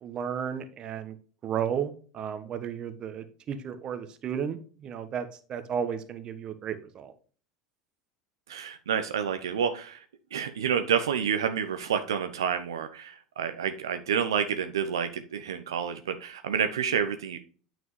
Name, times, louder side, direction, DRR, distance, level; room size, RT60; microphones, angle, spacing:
voice 1, 0.0-1.2 1.4-7.1, right 8 dB, 40° right, 10 dB, 1.1 m, -33 dB
voice 2, 8.5-10.0 10.3-17.4, right 7 dB, 75° right, 8 dB, 0.7 m, -29 dB
9.1 x 6.1 x 3.1 m, 0.40 s
figure-of-eight pair, 75°, 2 cm